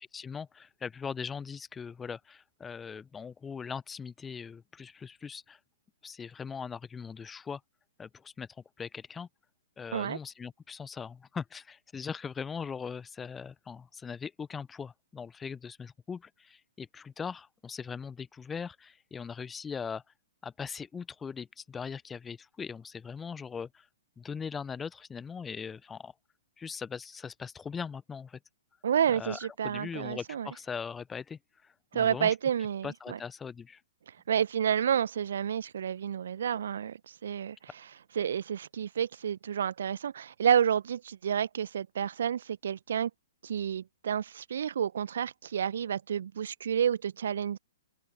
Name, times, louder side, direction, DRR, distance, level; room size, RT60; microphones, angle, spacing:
voice 1, 0.0-5.6 6.0-7.6 8.0-8.5 8.8-9.3 9.8-20.0 20.4-23.9 24.2-26.1 26.6-28.4 29.1-32.3 32.8-33.8, left 6 dB, 10° left, 1.0 m, -40 dB
voice 2, 28.8-30.5 31.9-33.2 34.3-37.6 38.1-43.1 43.4-47.6, right 8 dB, 55° right, 1.1 m, -30 dB
open air
figure-of-eight pair, 115°, 0 cm